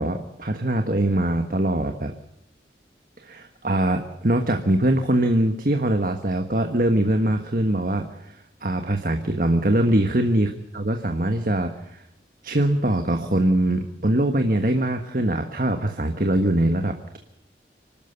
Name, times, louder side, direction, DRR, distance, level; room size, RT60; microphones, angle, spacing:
voice 1, 0.0-2.1 3.2-12.0 12.4-17.2, right 1 dB, 50° right, 6 dB, 1.5 m, -23 dB
25.5 x 13.0 x 8.1 m, 0.84 s
head